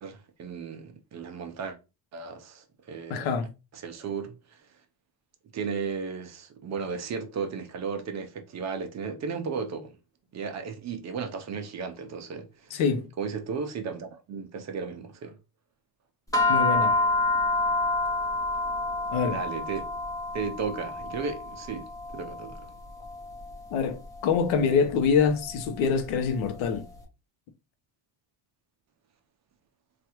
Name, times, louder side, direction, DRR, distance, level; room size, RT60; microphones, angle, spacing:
voice 1, 0.0-1.8 2.1-3.3 3.7-4.4 5.5-10.0 10.3-12.7 13.2-15.4 19.2-19.8 20.3-21.9 22.1-22.7, right 5 dB, 35° right, 0.5 m, -35 dB
voice 2, 3.1-3.5 12.7-13.1 16.5-17.0 19.1-19.4 23.7-26.9, left 6 dB, 85° left, 0.7 m, -25 dB
sound 1, 16.3-26.8, left 2 dB, 10° left, 0.6 m, -29 dB
3.2 x 2.4 x 2.9 m
cardioid pair, 145°, 46 cm